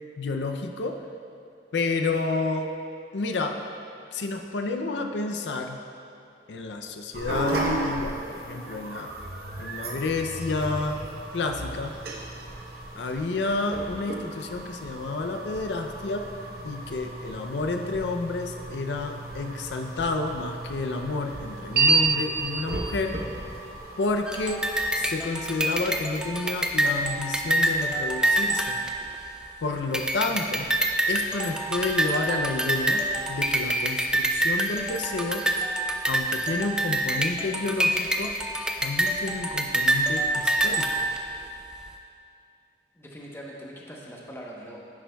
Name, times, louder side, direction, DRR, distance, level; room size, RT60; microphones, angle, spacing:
voice 1, 0.2-1.0 1.7-2.7 3.1-3.6 4.1-5.8 6.5-9.1 9.6-11.0 11.3-11.9 13.0-16.2 16.6-23.2 24.0-24.6 24.9-28.8 29.6-30.7 31.1-33.0 33.3-35.4 36.1-38.3 38.8-41.1, left 3 dB, 85° left, 5 dB, 0.5 m, -30 dB
sound 1, 7.1-25.0, right 3 dB, 60° right, 0.9 m, -32 dB
sound 2, 24.3-29.5 29.9-41.5, right 1 dB, 5° right, 0.4 m, -26 dB
voice 2, 42.9-44.9, equal, 15° left, -3 dB, 0.9 m, -42 dB
10.0 x 9.6 x 2.3 m, 2.6 s
head